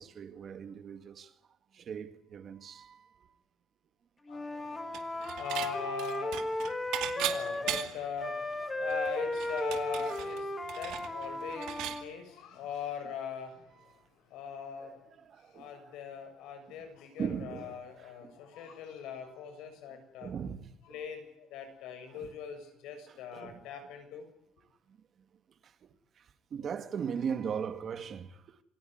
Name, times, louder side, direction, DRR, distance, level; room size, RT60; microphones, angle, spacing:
voice 1, 0.0-1.3 1.7-3.3 11.0-11.3 14.8-16.0 16.7-16.8 17.2-18.4 20.2-20.8 22.1-22.3 23.1-23.6 24.9-25.0 25.6-25.7 26.2-28.6, right 7 dB, 35° right, 2.0 m, -39 dB
voice 2, 4.3-6.7 7.0-13.6 14.3-15.0 15.5-20.3 20.9-24.3, left 7 dB, 85° left, 7.1 m, -41 dB
Wind instrument woodwind instrument, 4.3-7.9 8.2-12.1, left 1 dB, 10° left, 2.4 m, -35 dB
Dishes pots and pans / Chink clink, 4.9-5.7 6.0-8.1 8.5-8.6 8.9-12.0, right 13 dB, 85° right, 2.4 m, -37 dB
27.5 x 16.5 x 9.6 m
cardioid pair, 170°, 0 cm